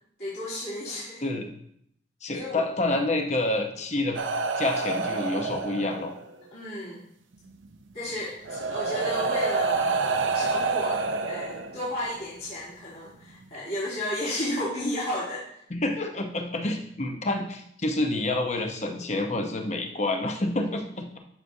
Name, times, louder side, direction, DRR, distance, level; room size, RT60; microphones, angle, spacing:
voice 1, 0.2-1.2 2.3-2.6 6.5-7.0 7.9-10.0 10.3-15.6, left 1 dB, 55° left, -10 dB, 2.9 m, -33 dB
voice 2, 1.2-1.5 2.2-4.2 4.6-6.1 15.7-21.2, left 2 dB, 35° left, 4 dB, 0.9 m, -28 dB
sound 1, 4.1-6.3 7.6-7.7 8.4-12.1 13.1-13.3, right 4 dB, 85° right, 0.7 m, -28 dB
11.5 x 6.3 x 2.7 m, 0.69 s
head